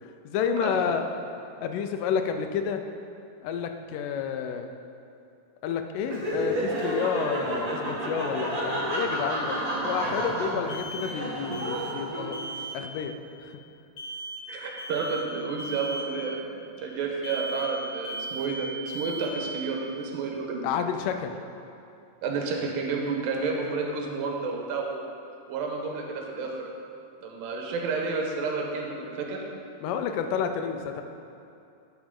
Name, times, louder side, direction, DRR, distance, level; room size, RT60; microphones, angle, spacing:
voice 1, 0.0-1.1 1.6-2.8 3.4-4.7 5.6-12.4 12.7-13.5 20.6-21.4 29.8-31.0, left 7 dB, 80° left, 6 dB, 2.1 m, -30 dB
Laughter, 6.0-12.6, right 1 dB, 40° right, 1.2 m, -30 dB
sound 1, 10.7-11.3 11.5-12.1 12.3-12.8 14.0-14.5 14.8-15.3 15.6-16.1 17.2-17.8 18.0-18.6 18.8-19.4, right 1 dB, 55° left, 1.7 m, -37 dB
voice 2, 14.5-20.7 22.2-25.2 25.5-26.7 27.2-29.4, right 4 dB, 85° right, 0 dB, 2.7 m, -31 dB
12.5 x 5.9 x 3.7 m, 2.6 s
omnidirectional pair, 3.9 m